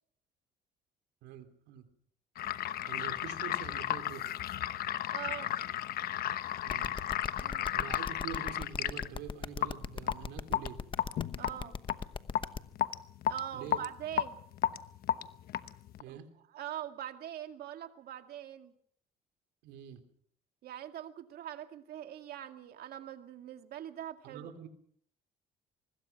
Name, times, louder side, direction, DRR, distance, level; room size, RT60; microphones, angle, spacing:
voice 1, 1.2-1.9 2.8-4.3 6.6-7.0 7.7-10.8 13.5-13.8 16.0-16.3 19.6-20.0 24.2-24.7, right 9 dB, 90° right, 8 dB, 3.2 m, -45 dB
sound 1, 2.4-16.0, left 11 dB, 65° left, 1.0 m, -34 dB
voice 2, 5.1-5.5 7.4-7.7 11.4-11.7 13.3-14.4 16.1-16.2 16.5-18.7 20.6-24.5, right 11 dB, 65° right, 7 dB, 2.2 m, -42 dB
sound 2, 6.7-12.6, left 5 dB, 30° left, 1.0 m, -38 dB
24.5 x 21.0 x 6.0 m, 0.65 s
cardioid pair, 110°, 17 cm